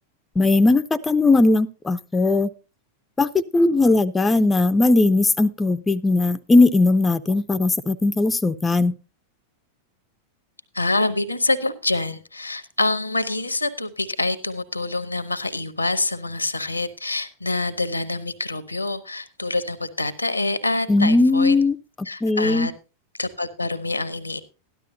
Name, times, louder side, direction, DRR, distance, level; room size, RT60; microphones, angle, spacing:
voice 1, 0.4-2.5 3.2-8.9 20.9-21.7 22.2-22.7, left 2 dB, 10° left, 11 dB, 0.5 m, -18 dB
voice 2, 10.7-21.6 22.0-22.7 23.2-24.4, left 2 dB, 85° left, 15 dB, 0.9 m, -26 dB
13.0 x 11.5 x 2.7 m, 0.31 s
figure-of-eight pair, 90°, 0 cm